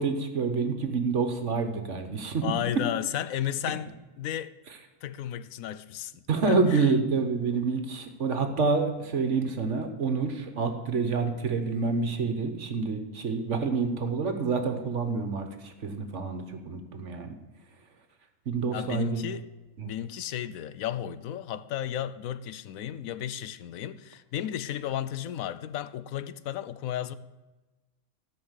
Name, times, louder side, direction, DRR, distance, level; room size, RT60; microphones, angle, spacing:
voice 1, 0.0-2.4 6.3-17.3 18.5-19.2 19.8-19.9, right 4 dB, 60° right, 1.4 m, -28 dB
voice 2, 2.4-3.9 4.2-4.5 5.0-6.1 6.5-6.9 18.7-19.5 19.8-27.1, left 11 dB, 75° left, 1.0 m, -33 dB
13.0 x 5.7 x 8.1 m
omnidirectional pair, 1.5 m